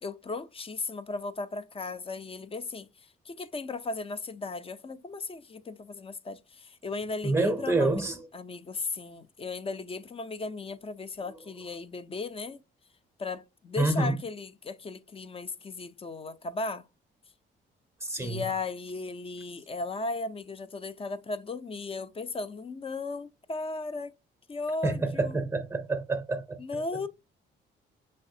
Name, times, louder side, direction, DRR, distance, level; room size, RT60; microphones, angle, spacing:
voice 1, 0.0-8.0 8.3-12.6 13.2-16.8 18.2-24.1 24.5-25.4 26.6-27.1, left 3 dB, 30° left, 0.5 m, -36 dB
voice 2, 7.2-8.2 13.8-14.1 18.0-18.4 24.8-26.6, right 2 dB, 15° right, 0.7 m, -27 dB
6.1 x 3.3 x 2.7 m
cardioid pair, 90°, 20 cm